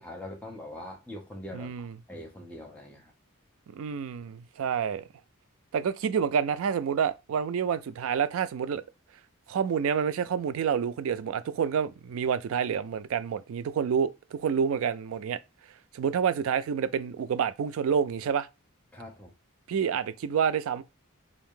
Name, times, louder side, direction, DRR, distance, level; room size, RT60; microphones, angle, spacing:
voice 1, 0.0-3.1 18.9-19.3, left 1 dB, 5° left, 0.8 m, -43 dB
voice 2, 1.5-2.0 3.7-5.1 5.7-8.8 9.5-15.4 15.9-18.5 19.7-20.8, right 7 dB, 65° right, 0.3 m, -28 dB
3.5 x 2.6 x 3.6 m
head